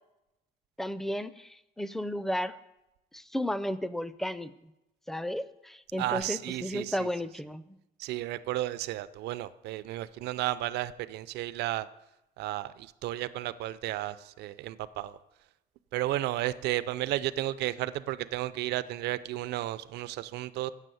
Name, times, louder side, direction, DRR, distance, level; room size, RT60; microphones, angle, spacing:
voice 1, 0.8-2.6 3.1-4.5 5.1-7.8, equal, ahead, 15 dB, 0.4 m, -33 dB
voice 2, 6.0-6.9 8.0-11.9 12.4-15.1 15.9-20.7, right 15 dB, 80° right, 15 dB, 0.5 m, -33 dB
8.1 x 6.0 x 7.7 m, 0.92 s
cardioid pair, 110°, 17 cm